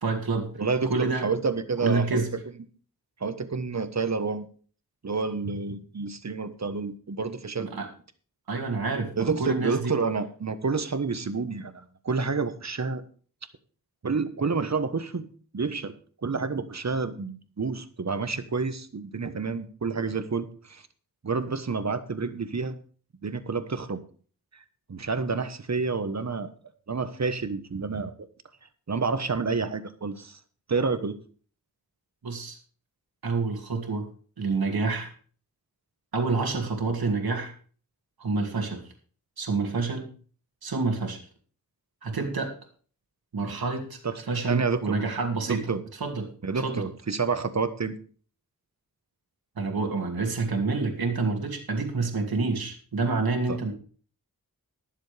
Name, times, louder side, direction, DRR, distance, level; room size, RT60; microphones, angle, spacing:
voice 1, 0.0-0.5 0.9-1.3 1.8-2.3 7.6-7.9 8.5-9.9 32.2-32.6 33.2-34.1 34.4-35.1 36.1-37.5 38.2-38.8 39.4-40.1 40.6-41.2 42.0-42.5 43.3-45.6 45.9-46.8 49.6-53.7, right 3 dB, 85° right, 3 dB, 2.5 m, -28 dB
voice 2, 0.6-2.3 3.2-4.5 5.0-7.7 9.2-13.0 14.0-15.3 15.5-15.9 16.2-20.9 21.2-22.7 23.2-24.0 24.5-24.6 24.9-26.5 26.9-28.1 28.9-30.4 30.7-31.2 44.0-44.1 44.5-45.0 45.5-45.8 46.4-47.9 53.5-53.6, right 4 dB, 50° right, 10 dB, 1.3 m, -29 dB
21.5 x 7.3 x 3.4 m, 0.43 s
cardioid pair, 55°, 36 cm